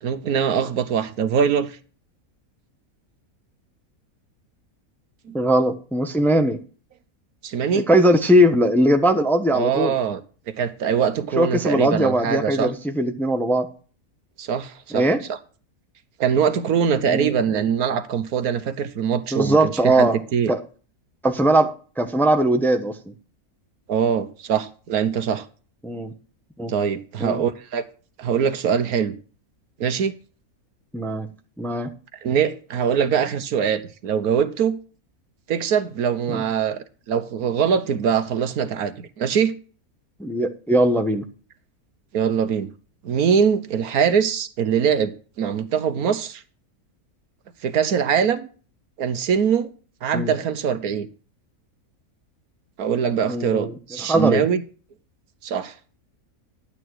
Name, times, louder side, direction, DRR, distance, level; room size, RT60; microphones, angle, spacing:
voice 1, 0.0-1.7 5.3-5.4 7.4-7.9 9.5-10.2 10.5-12.7 14.4-15.4 16.2-20.5 23.9-25.4 26.7-27.8 28.2-29.1 29.8-30.1 32.2-34.8 35.5-39.5 42.1-42.7 43.0-46.4 47.6-48.5 49.0-49.7 50.0-51.1 52.8-54.6 55.4-55.7, right 7 dB, 80° right, 1.5 m, -22 dB
voice 2, 5.3-6.6 7.9-9.9 11.4-13.7 14.9-15.2 17.1-17.6 19.3-20.2 20.5-20.6 21.2-23.0 25.8-26.1 26.6-26.7 27.2-27.4 30.9-31.3 31.6-31.9 36.3-36.4 40.2-41.2 50.1-50.3 53.3-53.7 54.1-54.4, right 1 dB, ahead, 0.8 m, -20 dB
11.0 x 8.8 x 4.7 m
omnidirectional pair, 1.6 m